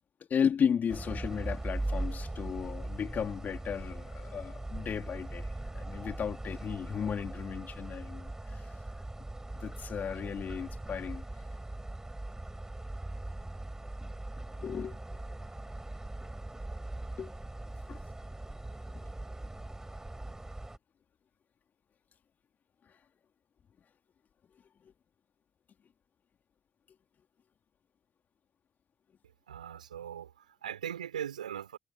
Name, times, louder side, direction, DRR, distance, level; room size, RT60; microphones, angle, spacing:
voice 1, 0.3-8.6 9.5-11.2 14.6-15.0 17.2-17.3 17.9-18.0 18.9-19.0, left 7 dB, 45° left, 3.8 m, -34 dB
sound 1, 0.9-20.8, right 2 dB, 15° right, 5.9 m, -40 dB
voice 2, 29.5-31.8, right 9 dB, 85° right, 5.9 m, -40 dB
figure-of-eight pair, 45°, 4 cm